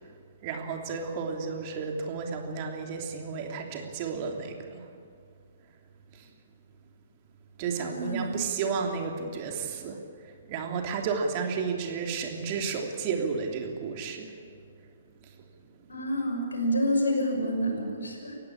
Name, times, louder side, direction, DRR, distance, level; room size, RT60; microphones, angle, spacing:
voice 1, 0.4-4.9 6.1-6.3 7.6-14.6 15.2-15.4 15.8-15.9, right 5 dB, 35° right, 3 dB, 3.0 m, -32 dB
voice 2, 7.8-8.4 15.9-18.4, equal, 70° left, 3 dB, 5.9 m, -28 dB
29.5 x 16.0 x 8.7 m, 2.2 s
figure-of-eight pair, 120°, 0 cm